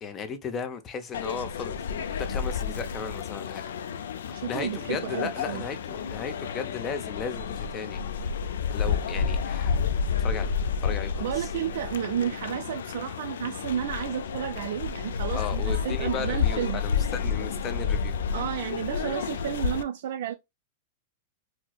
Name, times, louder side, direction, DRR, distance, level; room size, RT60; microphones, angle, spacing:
voice 1, 0.0-3.6 4.3-8.0 8.7-9.9 10.2-10.5 10.8-11.5 15.3-18.2, left 6 dB, 20° left, 0.5 m, -36 dB
sound 1, 1.1-19.8, left 6 dB, 90° left, 0.3 m, -30 dB
voice 2, 4.3-5.6 11.2-16.8 18.3-20.3, right 10 dB, 65° right, 0.3 m, -32 dB
4.3 x 2.0 x 2.2 m
supercardioid pair, 160°, 0 cm